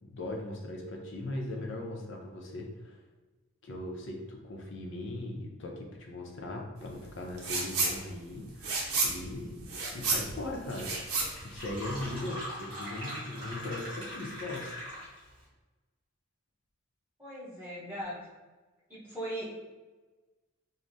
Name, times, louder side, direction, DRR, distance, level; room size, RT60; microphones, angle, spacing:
voice 1, 0.0-3.0 3.6-9.6 9.9-14.7, left 1 dB, 55° left, 1 dB, 0.6 m, -39 dB
sound 1, 7.4-8.0 8.3-12.2, right 3 dB, 90° right, 0.7 m, -31 dB
Fill (with liquid), 10.2-10.3 10.5-15.3, equal, 25° right, 1.4 m, -42 dB
voice 2, 17.2-18.2 18.9-19.6, right 1 dB, 10° right, -9 dB, 0.9 m, -39 dB
4.7 x 2.1 x 2.6 m, 1.2 s
head